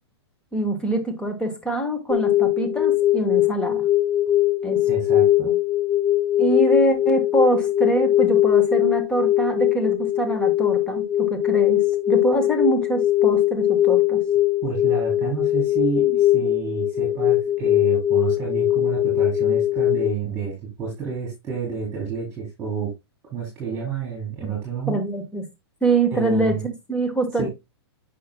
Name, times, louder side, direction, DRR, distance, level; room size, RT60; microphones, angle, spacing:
voice 1, 0.5-3.8 4.6-4.8 6.4-14.2 16.1-16.2 24.4-24.5 24.9-25.4 25.8-27.5, right 2 dB, 5° left, 1.2 m, -24 dB
sound 1, 2.1-20.1, left 13 dB, 25° left, 0.7 m, -20 dB
voice 2, 4.9-5.5 14.6-22.9 23.3-25.0 26.1-26.7 27.4-27.5, right 6 dB, 20° right, 3.7 m, -29 dB
8.4 x 5.7 x 2.2 m
hypercardioid pair, 135°, 14 cm